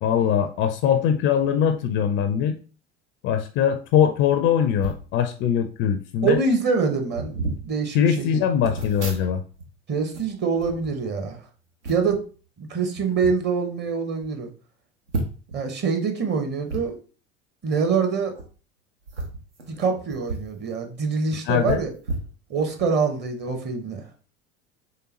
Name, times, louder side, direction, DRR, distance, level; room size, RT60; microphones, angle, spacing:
voice 1, 0.0-2.6 3.2-6.4 7.9-9.4 21.5-21.8, left 8 dB, 35° left, 8 dB, 0.4 m, -22 dB
sound 1, 4.8-5.1 5.9-6.0 6.2-6.5 7.1-7.6 8.6-9.7 10.0-11.3 11.8-12.2 12.9-13.3 13.9-14.0 14.2-14.3 15.1-15.6 16.7-16.8 18.3-18.5 19.0-20.5 20.9-21.0 21.6-22.9 23.3-23.5, right 2 dB, 80° right, 0.9 m, -33 dB
voice 2, 6.2-7.3 7.6-8.4 9.9-11.4 11.9-12.2 12.6-14.5 15.5-16.9 17.6-18.4 19.7-21.9 22.5-24.0, right 5 dB, 30° right, 5 dB, 0.9 m, -25 dB
3.8 x 3.3 x 2.9 m, 0.38 s
figure-of-eight pair, 75°, 34 cm